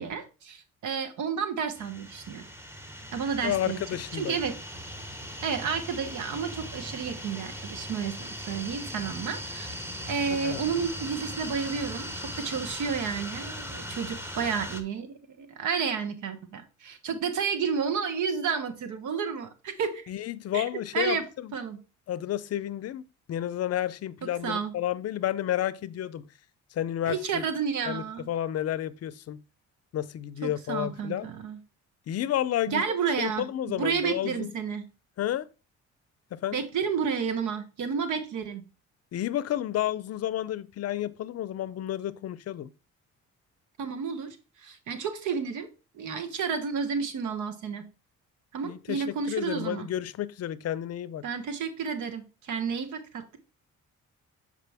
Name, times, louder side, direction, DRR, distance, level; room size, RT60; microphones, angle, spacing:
voice 1, 0.0-2.5 3.1-3.8 4.1-4.6 5.4-9.8 10.1-20.0 20.5-21.2 21.5-21.8 24.4-24.7 27.1-28.3 30.4-31.6 32.7-33.5 33.8-34.8 36.5-38.7 43.8-45.7 45.9-47.9 48.5-49.9 51.2-53.4, right 6 dB, 80° right, 1.1 m, -31 dB
sound 1, 1.8-14.8, equal, 10° right, 1.0 m, -39 dB
voice 2, 3.4-4.4 10.3-10.6 20.1-21.5 22.1-26.3 26.7-27.4 27.9-29.4 29.9-31.3 32.1-32.8 33.2-34.5 35.2-35.5 36.3-36.7 39.1-42.7 48.6-51.2, left 12 dB, 55° left, 0.5 m, -31 dB
6.7 x 4.9 x 3.4 m
cardioid pair, 90°, 30 cm